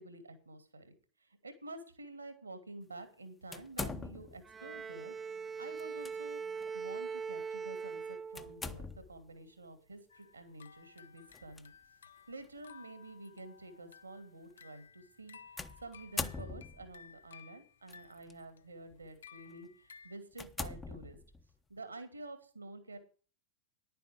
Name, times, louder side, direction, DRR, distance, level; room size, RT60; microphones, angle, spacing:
voice 1, 0.0-5.1 5.4-6.4 6.7-11.7 12.3-21.2 21.7-23.0, right 2 dB, 80° right, 9 dB, 2.2 m, -49 dB
sound 1, 3.5-4.5 5.8-6.1 6.6-6.7 8.4-9.2 11.3-11.6 12.4-12.5 15.6-17.0 17.9-18.3 18.9-19.1 19.6-19.7 20.3-21.6, left 3 dB, 15° left, 0.8 m, -42 dB
Bowed string instrument, 4.4-8.9, right 5 dB, 15° right, 0.5 m, -41 dB
sound 2, 10.1-20.2, left 7 dB, 70° left, 0.6 m, -58 dB
10.5 x 9.3 x 5.0 m, 0.38 s
figure-of-eight pair, 90°, 0 cm